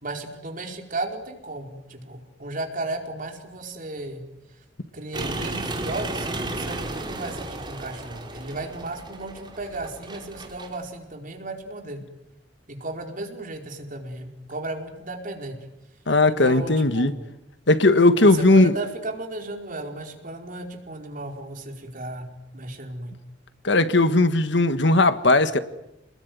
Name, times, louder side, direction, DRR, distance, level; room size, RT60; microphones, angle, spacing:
voice 1, 0.0-4.2 4.9-12.0 12.7-15.6 16.3-17.1 18.1-22.3 22.5-23.2, right 2 dB, 45° right, 4.8 m, -34 dB
sound 1, 5.1-10.8, right 2 dB, 25° right, 4.7 m, -33 dB
voice 2, 16.1-17.1 17.7-18.7 23.6-25.6, left 2 dB, 70° left, 1.6 m, -18 dB
29.0 x 21.0 x 9.6 m
head